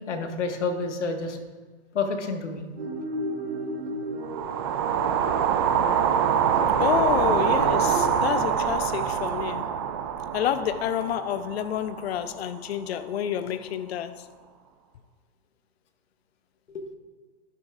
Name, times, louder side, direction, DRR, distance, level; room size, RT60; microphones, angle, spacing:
voice 1, 0.1-1.4 1.9-2.7 16.7-16.9, left 4 dB, 80° left, 1.7 m, -29 dB
sound 1, 2.7-8.1, right 2 dB, 65° right, 1.7 m, -33 dB
sound 2, 4.3-12.5, right 8 dB, 25° right, 0.3 m, -25 dB
voice 2, 6.8-9.7 10.3-14.3, left 10 dB, 60° left, 0.7 m, -28 dB
11.5 x 11.0 x 2.5 m
hypercardioid pair, 135°, 35 cm